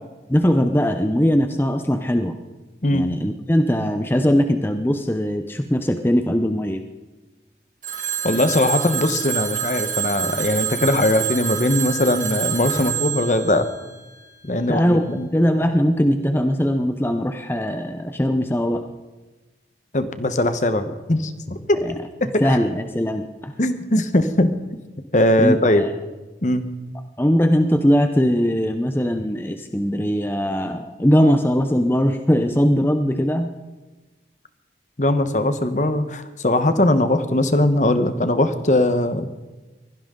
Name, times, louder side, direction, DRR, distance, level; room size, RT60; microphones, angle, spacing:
voice 1, 0.3-2.4 2.9-6.8 14.7-15.0 15.3-18.9 21.8-21.9 22.4-23.5 25.4-25.9 27.2-33.5, equal, 10° left, 7 dB, 0.7 m, -20 dB
Telephone, 7.8-14.6, right 9 dB, 45° right, 2.3 m, -28 dB
voice 2, 8.2-13.7 14.4-15.3 19.9-21.8 22.2-22.6 23.6-24.5 25.1-25.9 26.4-26.6 35.0-39.3, left 1 dB, 45° left, 10 dB, 1.1 m, -20 dB
sound 1, 12.7-13.2, right 1 dB, 75° left, 7.4 m, -35 dB
23.0 x 16.5 x 3.9 m, 1.2 s
head